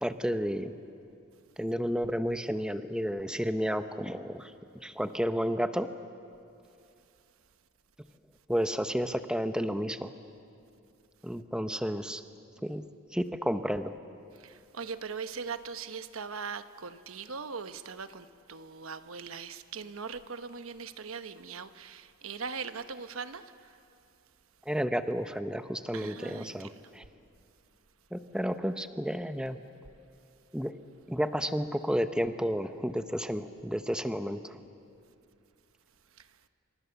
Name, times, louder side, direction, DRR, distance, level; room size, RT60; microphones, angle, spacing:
voice 1, 0.0-0.7 1.6-4.5 4.8-5.9 8.5-10.1 11.2-12.2 12.6-12.8 13.1-13.9 24.7-27.0 28.1-29.6 30.5-30.8 31.1-34.6, equal, 5° right, 0.8 m, -31 dB
voice 2, 14.3-23.8 25.9-26.8 36.1-36.4, right 5 dB, 80° right, 1.0 m, -40 dB
28.0 x 26.0 x 7.0 m
head